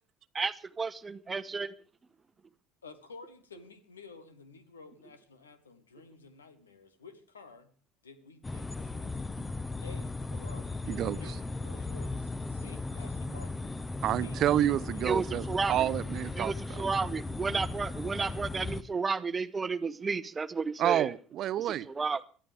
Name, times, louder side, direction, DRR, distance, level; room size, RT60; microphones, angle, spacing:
voice 1, 0.3-1.7 9.4-9.5 15.0-15.9 16.3-21.1 21.6-22.2, right 4 dB, 25° right, 15 dB, 0.9 m, -32 dB
voice 2, 2.8-7.7 8.0-9.3 9.8-10.8 11.2-13.7 14.2-15.1, left 4 dB, 85° left, 12 dB, 1.3 m, -52 dB
sound 1, 8.4-18.8, left 3 dB, 15° left, 0.8 m, -37 dB
voice 3, 10.9-11.2 14.0-16.5 20.8-21.9, right 12 dB, 50° right, 19 dB, 0.6 m, -29 dB
21.5 x 13.5 x 3.5 m, 0.41 s
hypercardioid pair, 65°, 0 cm